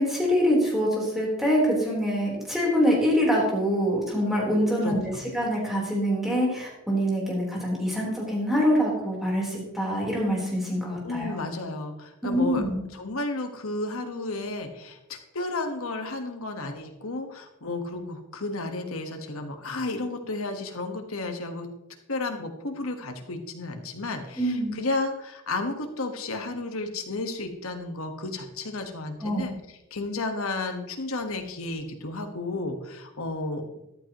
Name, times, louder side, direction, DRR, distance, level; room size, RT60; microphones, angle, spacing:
voice 1, 0.0-5.0 5.3-11.4 12.2-12.8 24.4-24.8 29.2-29.4, equal, ahead, -4 dB, 3.8 m, -25 dB
voice 2, 4.8-5.2 11.0-12.6 12.9-21.7 22.1-29.5 29.9-33.6, left 2 dB, 70° left, 5 dB, 1.4 m, -32 dB
13.5 x 12.0 x 3.0 m, 0.91 s
head